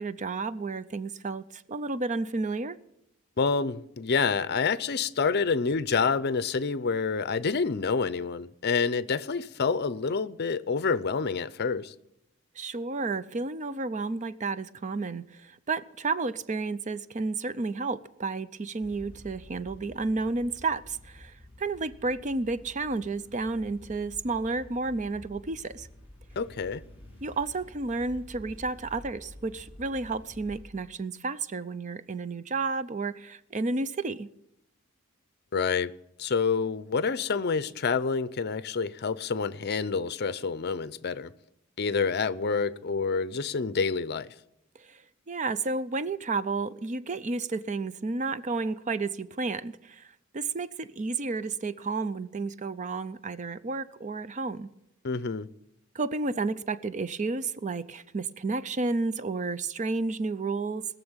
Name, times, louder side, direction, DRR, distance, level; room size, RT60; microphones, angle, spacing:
voice 1, 0.0-2.8 12.6-25.9 27.2-34.3 44.8-45.0 45.3-54.7 55.9-60.9, right 3 dB, 35° right, 0.5 m, -31 dB
voice 2, 3.4-11.9 26.4-26.8 35.5-35.9 36.2-41.3 41.8-44.3 55.0-55.5, left 5 dB, 50° left, 0.6 m, -28 dB
sound 1, 18.8-30.6, left 1 dB, 10° right, 5.3 m, -50 dB
20.0 x 7.0 x 8.8 m
head